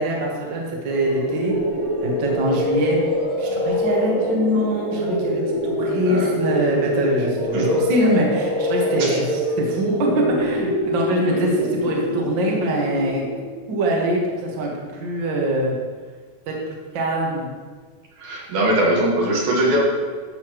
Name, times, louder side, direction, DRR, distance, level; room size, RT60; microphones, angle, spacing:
voice 1, 0.0-1.5 2.0-3.0 3.4-13.2 13.7-15.7 16.5-16.6 16.9-17.5, right 1 dB, 45° right, -2 dB, 1.8 m, -23 dB
sound 1, 0.9-13.7, equal, 60° left, 2.3 m, -24 dB
voice 2, 7.5-7.9 9.0-9.2 18.2-19.8, right 1 dB, 70° right, -2 dB, 2.8 m, -21 dB
13.0 x 7.0 x 3.1 m, 1.5 s
omnidirectional pair, 3.5 m